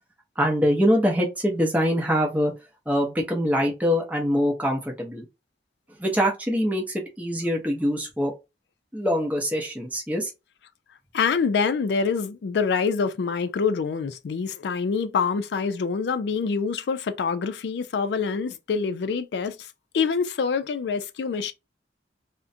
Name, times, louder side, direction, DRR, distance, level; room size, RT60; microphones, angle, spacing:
voice 1, 0.4-2.5 2.9-5.2 6.0-8.3 8.9-10.3, equal, 10° right, 0.6 m, -24 dB
voice 2, 11.1-21.5, left 5 dB, 70° left, 0.3 m, -26 dB
2.4 x 2.1 x 2.6 m
head